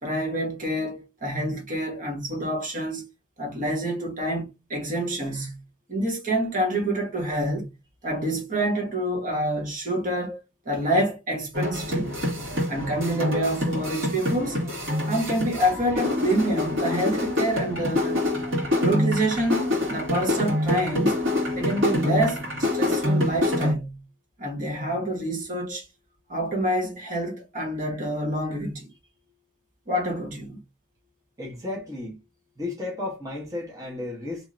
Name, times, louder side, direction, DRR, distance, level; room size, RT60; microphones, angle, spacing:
voice 1, 0.0-3.1 3.4-5.6 5.9-7.7 8.0-10.4 10.6-12.2 12.7-14.6 15.1-18.2 18.8-21.1 21.5-24.0 24.4-25.9 26.3-28.9 29.9-30.6, right 1 dB, 40° right, 1.1 m, -27 dB
sound 1, 11.5-23.7, left 1 dB, 65° right, 1.7 m, -26 dB
voice 2, 31.4-32.2 32.6-34.5, left 2 dB, 15° right, 0.9 m, -33 dB
2.9 x 2.8 x 2.5 m
head